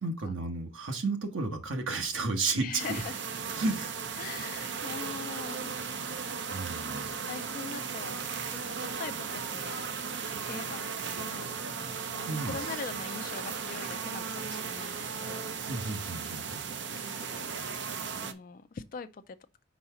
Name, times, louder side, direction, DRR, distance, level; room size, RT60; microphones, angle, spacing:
voice 1, 0.0-3.0 3.5-4.1 6.5-7.1 12.3-12.6 15.7-16.7, right 3 dB, 90° right, 1.2 m, -32 dB
voice 2, 2.5-3.2 4.2-5.8 7.1-9.8 10.4-15.5 16.9-17.5 18.2-19.4, left 5 dB, 45° left, 0.3 m, -43 dB
sound 1, 2.8-18.3, right 6 dB, 60° right, 0.6 m, -36 dB
4.7 x 4.2 x 5.5 m
head